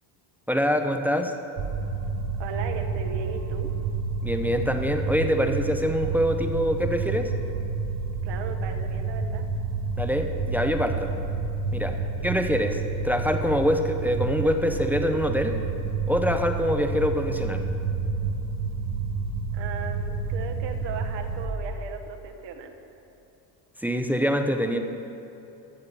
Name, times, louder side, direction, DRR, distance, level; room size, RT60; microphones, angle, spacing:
voice 1, 0.5-1.3 4.2-7.3 10.0-11.1 11.7-11.9 12.2-15.6 16.1-17.6 23.8-24.8, equal, 5° right, 6 dB, 0.6 m, -25 dB
sound 1, 1.6-21.5, right 4 dB, 35° right, 1.1 m, -29 dB
voice 2, 2.4-3.7 8.2-9.5 19.5-22.7, right 6 dB, 70° right, 4 dB, 1.4 m, -37 dB
14.5 x 7.3 x 6.6 m, 2.9 s
cardioid pair, 125°, 46 cm